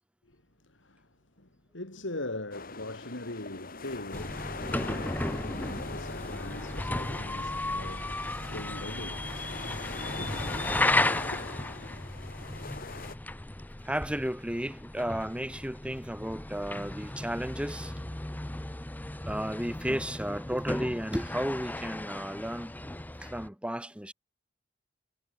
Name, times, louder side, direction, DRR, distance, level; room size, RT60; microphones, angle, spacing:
voice 1, 0.2-9.5 10.2-11.0 11.3-11.4, left 2 dB, 80° left, 3.5 m, -42 dB
sound 1, 2.5-13.2, left 3 dB, 50° left, 3.2 m, -42 dB
sound 2, 4.1-23.5, left 1 dB, 10° left, 0.7 m, -35 dB
voice 2, 13.8-17.9 19.3-22.7 23.2-24.1, equal, 5° right, 4.3 m, -33 dB
head